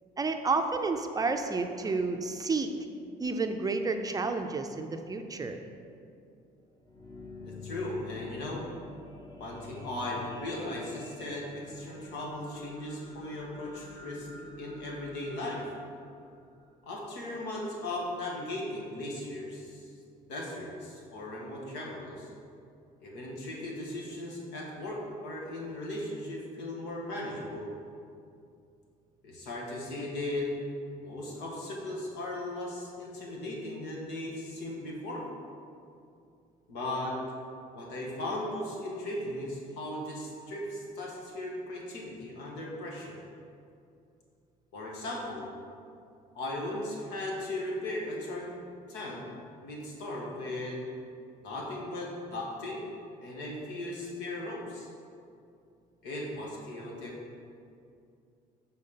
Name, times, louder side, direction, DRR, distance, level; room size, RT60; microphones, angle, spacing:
voice 1, 0.2-2.7 3.2-5.6, right 3 dB, 20° right, 6 dB, 0.4 m, -30 dB
sound 1, 6.6-17.1 17.7-17.8, left 3 dB, 25° left, 0.8 m, -48 dB
voice 2, 7.4-8.6 9.4-14.3 14.6-15.7 16.8-19.9 20.3-22.3 23.0-27.7 29.2-30.5 31.0-35.3 36.7-37.2 37.7-43.2 44.7-45.5 46.3-48.6 48.9-49.3 49.6-50.8 51.4-52.8 53.2-54.9 56.0-57.2, left 1 dB, 90° left, -2 dB, 1.5 m, -37 dB
6.5 x 4.2 x 5.6 m, 2.5 s
cardioid pair, 110°, 17 cm